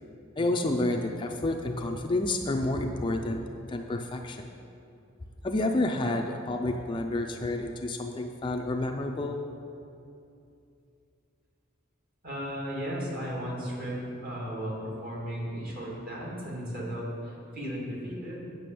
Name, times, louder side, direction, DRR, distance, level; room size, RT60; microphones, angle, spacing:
voice 1, 0.4-4.5 5.4-9.4, left 2 dB, 25° left, 3 dB, 0.5 m, -29 dB
voice 2, 12.2-18.5, equal, 45° right, -4 dB, 2.5 m, -35 dB
9.2 x 6.2 x 6.8 m, 2.6 s
head